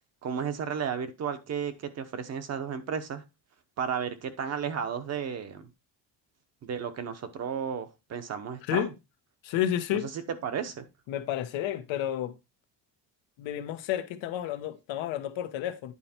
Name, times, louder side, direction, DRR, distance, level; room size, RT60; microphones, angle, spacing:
voice 1, 0.2-3.2 3.8-5.7 6.6-8.9 10.1-10.8, right 7 dB, 35° right, 0.9 m, -33 dB
voice 2, 9.4-10.1 11.1-12.3 13.4-15.9, left 11 dB, 80° left, 1.2 m, -31 dB
9.8 x 4.5 x 4.3 m
cardioid pair, 175°, 45 cm